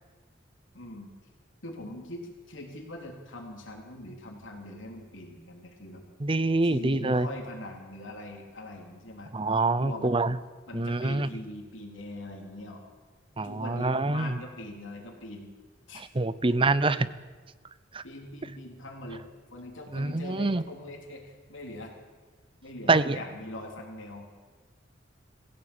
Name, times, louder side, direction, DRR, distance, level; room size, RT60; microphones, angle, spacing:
voice 1, 0.7-1.2 1.6-6.0 6.6-9.3 9.8-10.2 10.7-12.8 13.4-15.5 15.9-16.0 16.5-16.6 18.0-19.2 19.5-21.9 22.6-24.3, left 1 dB, 85° left, 1 dB, 3.5 m, -42 dB
voice 2, 6.2-7.3 9.3-10.3 10.7-11.3 13.4-14.3 16.2-17.0 17.9-18.0 19.9-20.6 22.9-23.2, right 3 dB, 30° right, 15 dB, 0.7 m, -25 dB
22.0 x 16.0 x 8.8 m, 1.4 s
head